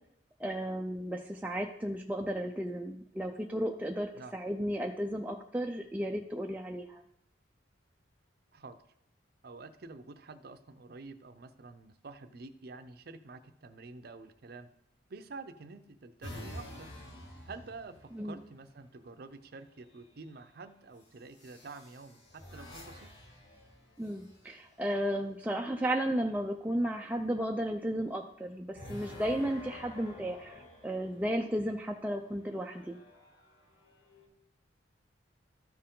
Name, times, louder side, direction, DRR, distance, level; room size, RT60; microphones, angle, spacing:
voice 1, 0.4-7.0 18.1-18.4 24.0-33.0, equal, 10° right, 1 dB, 0.4 m, -34 dB
voice 2, 9.4-14.7 15.1-16.9 17.5-23.1, right 3 dB, 55° right, 11 dB, 0.6 m, -48 dB
sound 1, 16.2-18.5 19.7-20.2 21.3-24.7 28.7-31.7 32.4-34.3, left 1 dB, 75° left, 2.2 m, -49 dB
13.0 x 4.5 x 3.8 m, 0.76 s
head